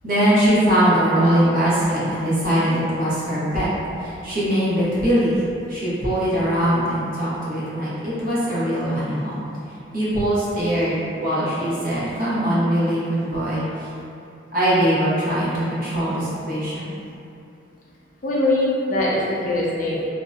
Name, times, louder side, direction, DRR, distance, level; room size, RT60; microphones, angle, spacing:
voice 1, 0.0-3.7 4.0-5.4 5.7-9.4 9.9-13.9 14.5-16.9, equal, 50° right, -9 dB, 0.7 m, -21 dB
voice 2, 18.2-20.1, left 1 dB, 45° left, -6 dB, 0.5 m, -22 dB
2.5 x 2.1 x 2.4 m, 2.6 s
head